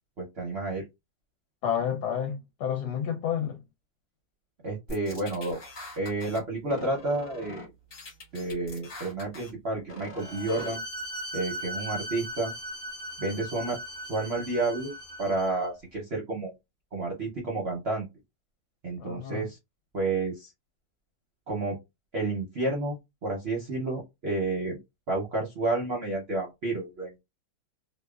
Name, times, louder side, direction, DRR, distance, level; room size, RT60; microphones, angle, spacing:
voice 1, 0.2-0.9 4.6-5.6 6.0-7.7 8.3-10.8 11.3-12.5 13.2-13.8 14.1-14.9 15.2-16.5 16.9-18.1 18.8-19.6 19.9-20.5 21.5-21.8 22.1-24.8 25.1-27.2, right 2 dB, 55° right, 0.7 m, -30 dB
voice 2, 1.6-3.6 19.0-19.5, left 9 dB, 70° left, 1.1 m, -30 dB
sound 1, 4.9-6.4 6.7-7.6 7.9-9.5 9.9-10.7, left 1 dB, 45° left, 1.0 m, -42 dB
Bowed string instrument, 10.2-15.7, right 1 dB, 25° left, 0.4 m, -38 dB
2.8 x 2.1 x 2.2 m
omnidirectional pair, 1.9 m